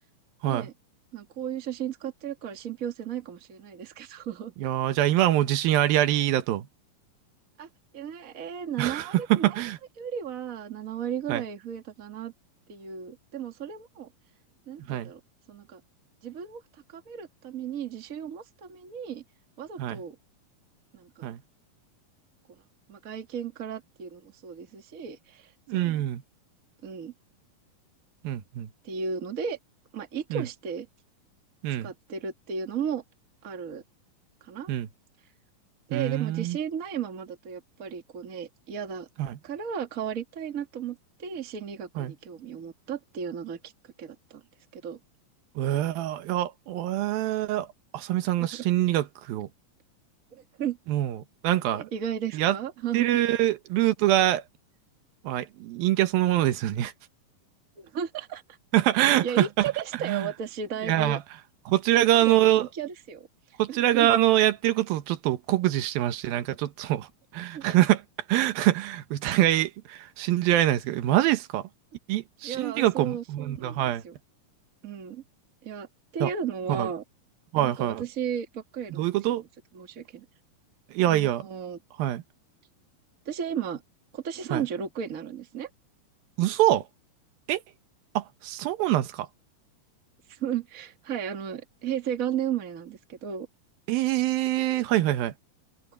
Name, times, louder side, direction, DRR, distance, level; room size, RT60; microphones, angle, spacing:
voice 1, 1.1-4.5 7.6-9.6 10.0-12.3 12.7-14.1 14.7-15.2 15.5-15.8 16.2-16.6 16.9-19.2 19.6-20.1 20.9-21.3 22.9-26.0 26.8-27.1 28.8-29.6 29.9-30.9 31.8-33.0 33.4-33.8 34.4-34.7 35.9-39.1 39.4-43.7 44.0-44.4 44.7-45.0 50.3-50.8 51.7-53.1 57.8-58.4 59.2-61.2 62.0-63.3 63.7-64.1 67.5-67.6 72.4-74.1 74.8-75.2 75.6-75.9 76.1-77.0 77.6-79.1 79.7-80.2 81.1-81.8 83.2-83.8 84.1-85.7 90.3-93.5, right 8 dB, 35° right, 1.5 m, -34 dB
voice 2, 4.6-6.7 8.8-9.8 11.3-11.4 14.9-15.1 19.8-20.0 21.2-21.4 25.7-26.2 28.2-28.7 30.3-30.5 31.6-31.9 34.7-34.9 35.9-36.6 39.2-39.4 42.0-42.1 45.6-47.7 47.9-49.5 50.9-51.2 51.4-51.9 52.3-52.6 52.9-54.4 55.2-56.9 58.7-60.3 60.8-61.2 61.7-62.7 63.6-68.0 68.3-71.7 72.1-74.0 76.2-76.3 76.7-76.9 77.5-78.0 78.9-79.4 80.9-81.5 82.0-82.2 84.5-84.6 86.4-86.8 87.5-87.6 88.1-89.3 93.9-95.3, right 14 dB, 90° right, 2.9 m, -24 dB
open air
omnidirectional pair, 4.1 m